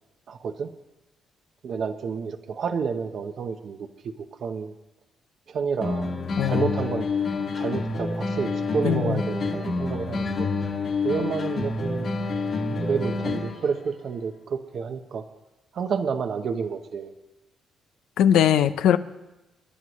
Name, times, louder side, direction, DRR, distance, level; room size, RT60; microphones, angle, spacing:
voice 1, 0.3-0.7 1.6-4.1 4.4-4.7 5.5-6.1 6.5-7.1 7.6-10.5 11.0-12.1 12.7-15.2 15.7-17.1, right 6 dB, 60° right, 7 dB, 0.9 m, -29 dB
sound 1, 5.8-13.8, left 3 dB, 55° left, 2.2 m, -28 dB
voice 2, 6.3-6.7 8.8-9.2 18.2-19.0, left 10 dB, 85° left, 12 dB, 0.6 m, -20 dB
28.0 x 11.0 x 3.1 m, 0.99 s
cardioid pair, 90°, 0 cm